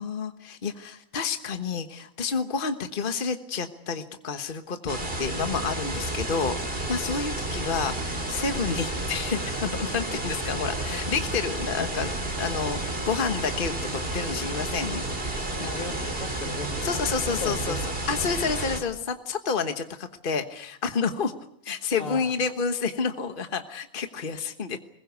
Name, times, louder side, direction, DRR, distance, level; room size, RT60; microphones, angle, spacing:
voice 1, 0.0-15.0 15.6-15.7 16.8-17.8 18.1-21.3 21.6-24.8, left 5 dB, 40° left, 7 dB, 1.4 m, -29 dB
sound 1, 4.9-18.8, right 2 dB, 45° right, 3.8 m, -31 dB
voice 2, 15.6-18.6 22.0-22.3, left 2 dB, 75° left, 5 dB, 2.9 m, -37 dB
22.0 x 21.0 x 8.2 m, 0.70 s
omnidirectional pair, 1.4 m